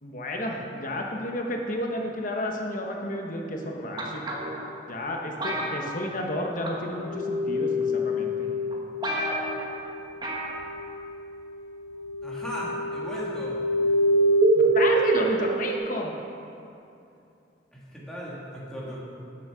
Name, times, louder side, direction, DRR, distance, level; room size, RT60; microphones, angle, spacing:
voice 1, 0.0-4.2 4.9-8.3 14.5-16.1, left 1 dB, 50° left, 1 dB, 1.0 m, -31 dB
sound 1, 4.0-4.6 5.4-6.4 6.6-6.9 7.8-7.9 8.4-8.5 8.7-8.8 9.0-9.7 10.2-10.5 10.8-10.9, right 1 dB, 25° right, 1.3 m, -31 dB
sound 2, 6.9-10.0 10.4-15.8, right 1 dB, 70° right, 0.9 m, -26 dB
voice 2, 12.2-13.6 17.7-19.0, equal, 5° left, -7 dB, 2.0 m, -36 dB
9.0 x 7.2 x 6.1 m, 2.7 s
head